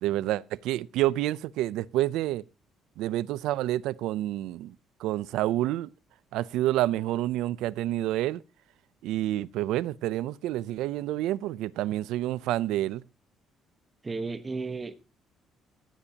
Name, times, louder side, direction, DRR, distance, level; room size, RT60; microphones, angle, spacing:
voice 1, 0.0-2.4 3.0-4.7 5.0-5.9 6.3-8.4 9.0-13.0, right 14 dB, 90° right, 0.5 m, -28 dB
voice 2, 14.0-15.0, right 4 dB, 20° right, 1.2 m, -33 dB
16.0 x 14.5 x 2.9 m
cardioid pair, 135°, 0 cm